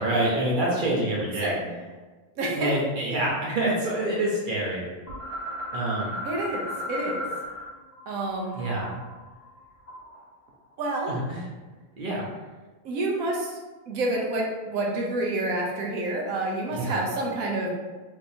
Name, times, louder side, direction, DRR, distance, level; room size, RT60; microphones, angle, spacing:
voice 1, 0.0-1.5 2.5-4.8 5.7-6.1 8.5-9.0 11.1-11.5 12.0-12.2 16.7-17.0, right 1 dB, 50° right, -4 dB, 0.7 m, -26 dB
voice 2, 1.4-1.7 2.4-2.7 6.2-7.2 8.1-8.6 10.8-11.2 12.8-13.6 13.9-17.7, right 2 dB, 80° right, -1 dB, 1.1 m, -28 dB
sound 1, 5.1-7.7 7.9-10.2, left 1 dB, 45° left, 1.1 m, -35 dB
3.4 x 2.8 x 2.6 m, 1.3 s
omnidirectional pair, 1.5 m